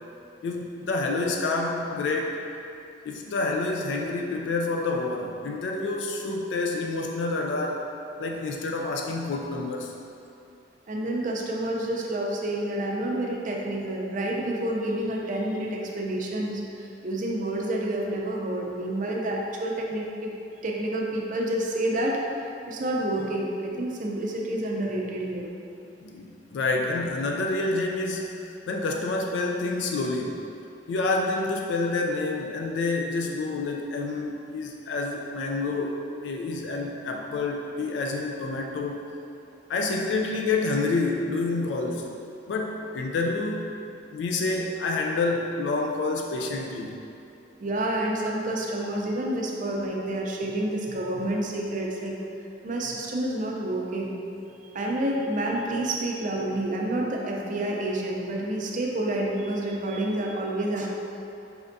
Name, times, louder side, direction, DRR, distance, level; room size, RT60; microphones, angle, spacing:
voice 1, 0.4-2.4 3.0-7.9 8.2-9.9 26.0-30.5 30.9-39.0 39.7-42.1 42.5-43.7 44.1-47.0, left 3 dB, 70° left, 1 dB, 0.3 m, -28 dB
voice 2, 10.9-16.6 17.0-20.3 20.6-25.5 47.6-52.1 52.6-54.2 54.7-60.9, right 1 dB, 45° right, -1 dB, 0.5 m, -29 dB
4.3 x 3.4 x 2.6 m, 2.7 s
head